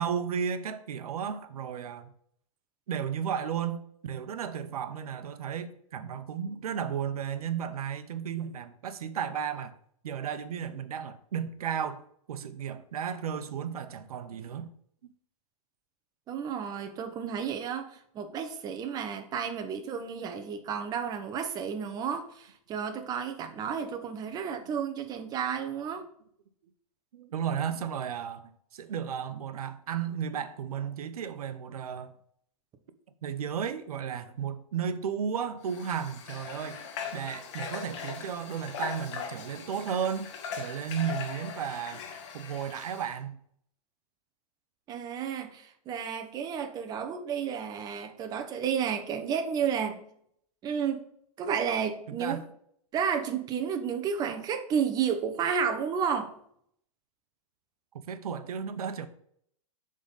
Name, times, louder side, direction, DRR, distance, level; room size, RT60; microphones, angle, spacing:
voice 1, 0.0-2.1 2.9-9.7 10.0-12.0 12.3-14.7 15.0-15.1 25.1-25.2 27.1-32.1 33.2-36.8 37.1-40.3 40.5-42.0 42.3-43.4 52.1-52.4 58.1-59.1, right 8 dB, 80° right, 0.7 m, -34 dB
voice 2, 16.3-26.0 44.9-50.1 50.6-51.0 51.4-52.4 52.9-56.4, right 7 dB, 20° right, 0.7 m, -32 dB
Water / Water tap faucet, 35.6-43.2, left 6 dB, 55° left, 1.3 m, -40 dB
7.4 x 3.7 x 4.0 m
hypercardioid pair, 145°, 19 cm